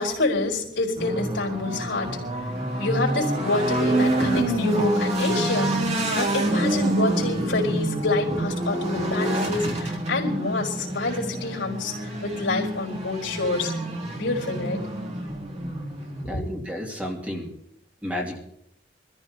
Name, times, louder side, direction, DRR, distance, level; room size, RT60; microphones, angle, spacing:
voice 1, 0.0-2.2 2.8-13.7 14.1-14.8 16.2-16.4, left 2 dB, 90° left, -3 dB, 4.2 m, -27 dB
sound 1, 1.0-16.2, right 1 dB, 35° right, 2.8 m, -27 dB
voice 2, 16.2-17.5 18.0-18.4, left 1 dB, 10° right, -1 dB, 2.4 m, -31 dB
25.0 x 14.5 x 2.9 m, 0.75 s
head